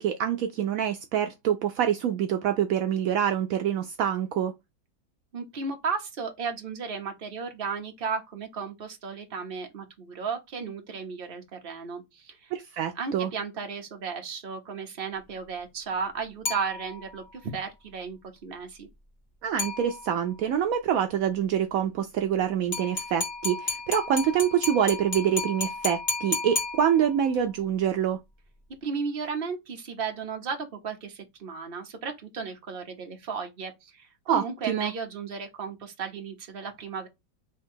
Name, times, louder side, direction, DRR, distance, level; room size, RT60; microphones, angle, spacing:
voice 1, 0.0-4.5 12.5-13.3 19.4-28.2 34.3-34.9, right 9 dB, 75° right, 0.8 m, -26 dB
voice 2, 5.3-12.5 12.9-18.9 28.8-37.1, right 5 dB, 40° right, 0.9 m, -34 dB
sound 1, 16.4-17.3 19.6-20.3 22.7-27.3, left 3 dB, 25° left, 1.4 m, -33 dB
3.7 x 2.9 x 4.4 m
omnidirectional pair, 2.0 m